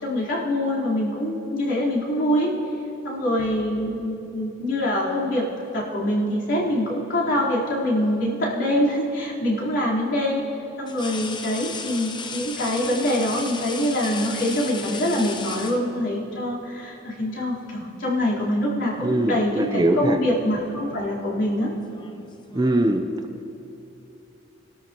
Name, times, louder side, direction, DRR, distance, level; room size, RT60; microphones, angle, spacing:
voice 1, 0.0-2.5 3.0-10.4 10.8-21.7, left 1 dB, 65° left, -7 dB, 3.8 m, -24 dB
sound 1, 6.6-7.4 9.2-9.3 10.9-16.3 17.5-17.7 18.1-18.9 19.1-19.5 20.4-23.0, left 4 dB, 25° left, 0.7 m, -37 dB
voice 2, 19.0-20.2 22.5-23.1, right 1 dB, 20° right, 6 dB, 0.6 m, -22 dB
28.0 x 12.5 x 3.0 m, 2.9 s
head